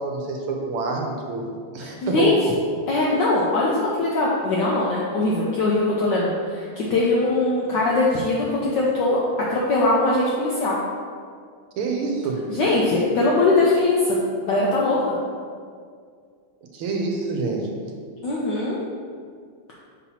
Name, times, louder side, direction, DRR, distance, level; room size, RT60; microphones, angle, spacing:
voice 1, 0.0-1.5 1.7-2.5 11.8-12.5 16.7-17.7, right 3 dB, 90° right, 1 dB, 1.7 m, -26 dB
voice 2, 1.8-2.3 2.9-9.2 9.5-10.8 12.5-14.2 14.4-15.1 18.2-18.8, left 2 dB, 70° left, -5 dB, 1.2 m, -21 dB
6.0 x 2.8 x 5.6 m, 2.1 s
omnidirectional pair, 2.4 m